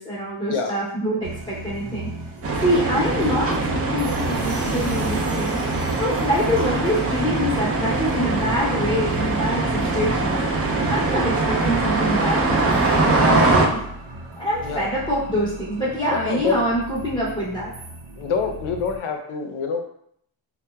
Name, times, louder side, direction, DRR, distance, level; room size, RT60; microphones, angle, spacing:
voice 1, 0.0-2.1 2.6-5.6 6.0-10.4 10.9-13.8 14.4-17.7, equal, 10° left, -8 dB, 0.6 m, -25 dB
sound 1, 1.2-19.0, right 2 dB, 80° right, 0.7 m, -35 dB
sound 2, 2.4-13.7, right 2 dB, 35° right, 0.4 m, -22 dB
sound 3, 4.0-7.4, right 1 dB, 60° right, 1.0 m, -38 dB
voice 2, 16.1-16.6 18.2-19.8, left 5 dB, 85° left, 4 dB, 0.6 m, -26 dB
2.7 x 2.2 x 2.2 m, 0.68 s
cardioid pair, 90°, 47 cm